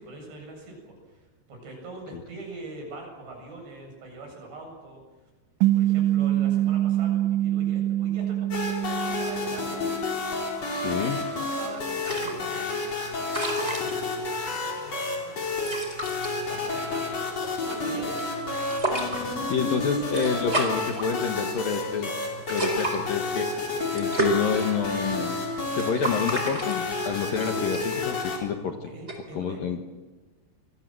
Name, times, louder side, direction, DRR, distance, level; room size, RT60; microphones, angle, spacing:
voice 1, 0.0-5.0 5.7-9.8 10.8-11.1 11.4-13.3 14.1-15.4 16.5-17.2 17.6-18.2 28.8-29.6, right 2 dB, 60° right, 2 dB, 9.7 m, -43 dB
sound 1, 5.6-10.3, right 13 dB, 80° right, 3.3 m, -25 dB
sound 2, 8.5-28.4, left 3 dB, 35° left, 5.1 m, -30 dB
voice 2, 10.7-11.2 19.5-22.1 22.5-25.4 25.7-28.8 29.3-29.8, left 7 dB, 60° left, 5 dB, 2.6 m, -28 dB
sound 3, 12.0-29.2, right 2 dB, 15° right, 4.1 m, -34 dB
28.0 x 22.0 x 7.8 m, 1.2 s
omnidirectional pair, 5.4 m